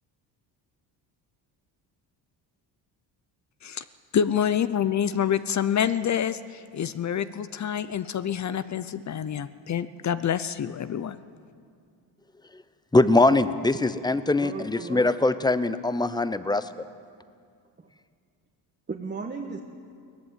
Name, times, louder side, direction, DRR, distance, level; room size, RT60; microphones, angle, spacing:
voice 1, 4.1-11.2, left 8 dB, 40° left, 13 dB, 0.7 m, -27 dB
voice 2, 12.9-16.7, left 2 dB, 10° left, 13 dB, 0.8 m, -22 dB
voice 3, 14.4-15.1 17.8-17.9 18.9-19.6, right 4 dB, 25° right, 1 dB, 1.4 m, -35 dB
19.0 x 15.0 x 9.4 m, 2.2 s
cardioid pair, 100°, 42 cm